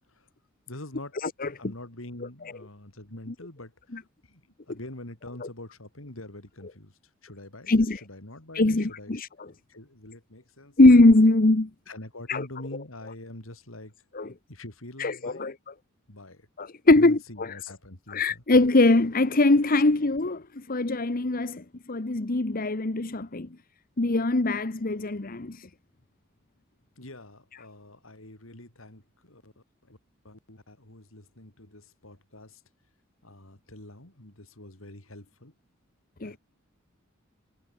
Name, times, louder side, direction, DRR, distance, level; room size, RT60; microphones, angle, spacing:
voice 1, 0.7-1.1 1.6-3.7 4.3-4.4 4.7-6.9 7.2-9.1 9.7-10.8 11.9-13.9 14.5-15.5 16.1-16.4 16.9-18.4 27.0-29.5 29.9-30.0 30.2-32.6 33.2-35.5 36.2-36.4, left 1 dB, 85° left, 4.6 m, -44 dB
voice 2, 1.2-1.7 3.9-4.0 5.4-5.5 7.7-8.0 8.5-9.5 10.8-11.7 12.3-12.5 14.1-14.3 15.0-15.7 16.6-17.6 18.1-20.4 20.7-21.6 21.9-23.5 24.0-25.6 36.2-36.3, left 2 dB, 45° left, 1.1 m, -22 dB
head